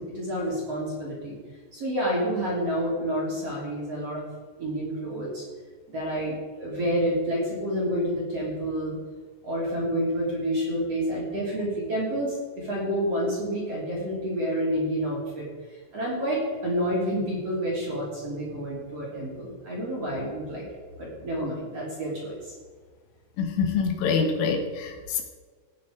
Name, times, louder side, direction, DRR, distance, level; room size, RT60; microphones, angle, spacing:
voice 1, 0.0-1.3 1.7-4.3 4.6-5.4 5.9-8.9 9.4-15.5 15.9-20.6 21.0-22.5, equal, 35° right, -4 dB, 3.3 m, -29 dB
voice 2, 23.4-25.2, left 5 dB, 75° left, 4 dB, 3.5 m, -25 dB
17.5 x 9.3 x 5.0 m, 1.5 s
omnidirectional pair, 5.9 m